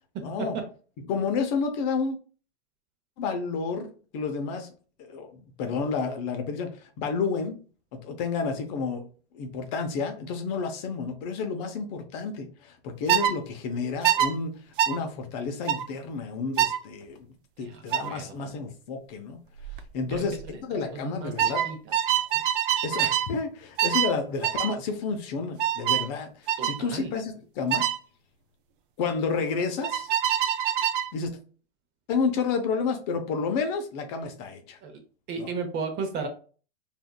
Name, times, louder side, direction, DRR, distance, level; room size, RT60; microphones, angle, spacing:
voice 1, 0.2-0.6 1.1-2.2 3.2-3.9 4.1-4.7 5.0-7.6 7.9-9.0 9.3-14.6 14.9-17.3 17.6-19.4 19.9-21.7 22.8-27.9 29.0-30.1 31.1-31.4 32.1-34.8 35.4-35.5, left 5 dB, 45° left, 6 dB, 0.7 m, -30 dB
sound 1, 13.1-13.4 14.0-14.3 14.8-15.0 15.7-15.9 16.6-16.8 17.9-18.1 19.6-19.8 20.1-20.5 21.4-23.3 23.8-24.1 24.4-24.7 25.6-26.1 26.5-26.8 27.7-28.0 29.8-31.1, right 10 dB, 55° right, 0.5 m, -25 dB
voice 2, 17.6-18.5 20.1-22.4 26.6-27.1 34.8-34.9 35.3-36.3, right 4 dB, 35° right, 5 dB, 0.8 m, -35 dB
3.6 x 2.6 x 2.3 m, 0.38 s
hypercardioid pair, 120°, 31 cm